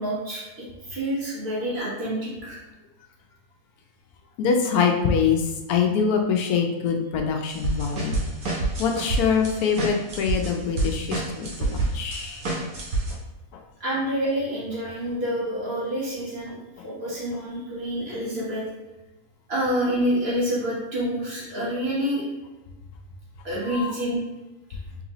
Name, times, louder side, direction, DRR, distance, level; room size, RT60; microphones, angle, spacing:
voice 1, 0.0-2.6 13.8-18.6 19.5-22.3 23.4-24.2, equal, 45° right, -7 dB, 1.4 m, -28 dB
voice 2, 4.4-8.2 8.8-12.4 13.5-13.6 23.7-23.9, left 6 dB, 80° left, 3 dB, 1.0 m, -24 dB
sound 1, 7.5-13.1, right 2 dB, 80° right, 1.5 m, -28 dB
3.9 x 3.2 x 2.9 m, 1.1 s
omnidirectional pair, 1.6 m